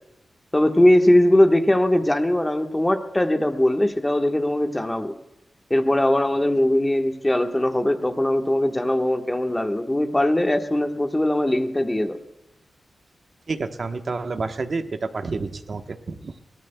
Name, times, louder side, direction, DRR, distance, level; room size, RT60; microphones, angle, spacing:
voice 1, 0.5-5.1 5.7-12.2, left 1 dB, 10° left, 4 dB, 1.3 m, -20 dB
voice 2, 13.5-16.4, right 3 dB, 40° right, 6 dB, 1.0 m, -29 dB
23.0 x 18.0 x 2.2 m, 0.87 s
wide cardioid pair, 165°, 0 cm